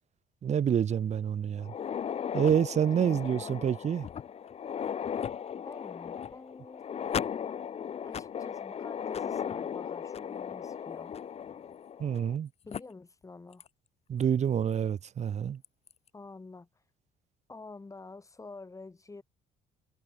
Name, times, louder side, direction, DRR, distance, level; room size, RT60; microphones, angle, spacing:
voice 1, 0.4-1.7 2.3-4.1 12.0-12.5 14.1-15.6, right 8 dB, 40° right, 1.2 m, -27 dB
sound 1, 1.6-12.4 12.7-12.8 13.6-13.7 14.2-14.3 15.6-15.9, left 8 dB, 40° left, 0.8 m, -37 dB
voice 2, 2.7-3.8 5.5-6.9 8.1-11.2 12.7-13.6 16.1-16.7 17.5-19.2, left 3 dB, 20° left, 7.2 m, -48 dB
cardioid pair, 110°, 17 cm